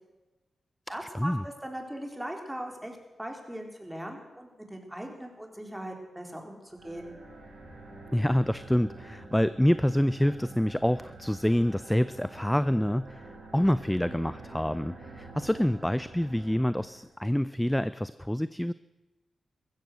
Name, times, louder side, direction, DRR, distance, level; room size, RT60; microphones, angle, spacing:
voice 1, 0.9-7.1, right 1 dB, 10° right, 2 dB, 3.9 m, -39 dB
sound 1, 6.7-17.2, right 2 dB, 80° right, 5.2 m, -47 dB
voice 2, 8.1-18.7, equal, 5° left, 15 dB, 0.5 m, -27 dB
15.0 x 14.0 x 6.3 m, 1.1 s
supercardioid pair, 40°, 0 cm